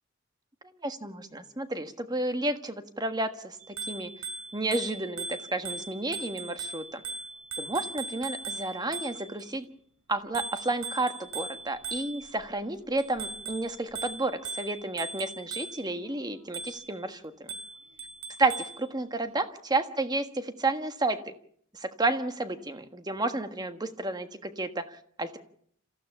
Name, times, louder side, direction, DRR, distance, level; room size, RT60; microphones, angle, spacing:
voice 1, 0.8-4.1 4.5-7.0 7.6-9.7 10.1-17.5 18.4-21.3 21.7-25.4, right 2 dB, 20° right, 8 dB, 1.4 m, -31 dB
Bicycle bell, 3.6-9.5 10.3-12.4 13.0-16.0 16.5-17.0 17.5-18.8, right 3 dB, 90° right, 4.3 m, -39 dB
27.0 x 15.0 x 7.1 m, 0.63 s
head